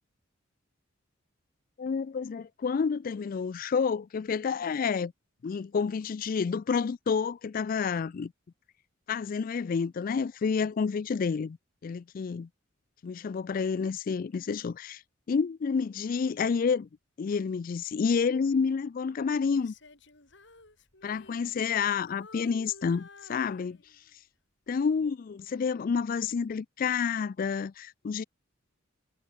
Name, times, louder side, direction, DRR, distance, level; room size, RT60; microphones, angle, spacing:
voice 1, 1.8-5.1 5.4-8.3 9.1-11.6 11.8-12.5 13.0-15.0 15.3-16.9 17.2-19.7 21.0-23.8 24.7-28.2, left 5 dB, 45° left, 0.3 m, -29 dB
Female singing, 19.5-21.8 22.1-24.1 24.7-24.9, left 3 dB, 60° left, 6.2 m, -53 dB
head